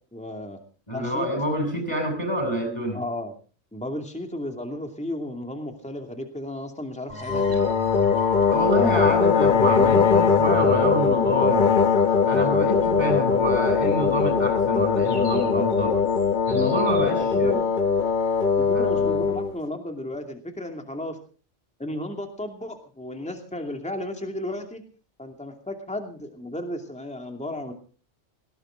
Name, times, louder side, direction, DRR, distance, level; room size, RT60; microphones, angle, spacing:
voice 1, 0.1-0.6 0.9-1.3 2.9-3.3 3.7-7.6 17.2-17.6 18.6-21.2 21.8-24.8 25.2-27.7, left 1 dB, 5° left, 4 dB, 2.6 m, -33 dB
voice 2, 0.9-3.0 8.5-11.7 12.3-16.0 16.5-17.6 18.7-19.0, equal, 25° left, 2 dB, 7.2 m, -27 dB
sound 1, 7.1-12.6, left 3 dB, 30° right, 2.5 m, -35 dB
sound 2, 7.3-19.5, left 6 dB, 45° left, 1.0 m, -21 dB
sound 3, 15.0-17.2, right 1 dB, 55° right, 4.3 m, -45 dB
19.5 x 17.5 x 3.8 m, 0.39 s
omnidirectional pair, 1.2 m